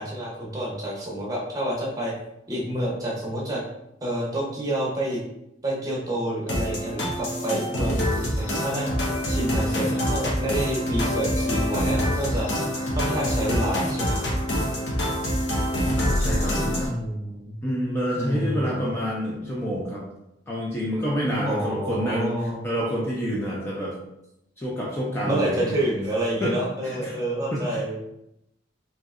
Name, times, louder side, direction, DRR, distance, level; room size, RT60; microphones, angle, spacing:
voice 1, 0.0-2.1 2.5-3.6 4.0-5.2 5.6-8.9 9.3-12.5 13.0-14.3 16.7-17.6 18.2-18.8 21.4-22.6 25.3-28.0, right 1 dB, 20° right, -4 dB, 0.7 m, -28 dB
sound 1, 6.5-16.9, equal, 75° left, 0.8 m, -25 dB
voice 2, 16.0-16.9 17.6-20.0 20.5-24.0 24.6-25.7 26.4-26.5 26.8-27.1 27.5-28.0, equal, 15° left, -5 dB, 0.4 m, -28 dB
3.0 x 2.7 x 2.4 m, 0.83 s
head